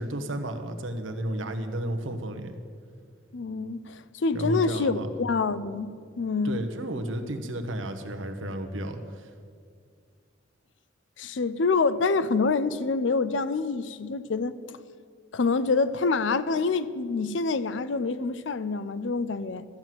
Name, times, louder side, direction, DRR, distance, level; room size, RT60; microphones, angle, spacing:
voice 1, 0.0-2.6 4.3-5.1 6.4-9.3, right 1 dB, 85° right, 1.2 m, -32 dB
voice 2, 3.3-5.9 6.2-6.6 11.2-14.6 15.3-19.7, left 4 dB, 70° left, 0.5 m, -26 dB
13.0 x 7.8 x 7.6 m
head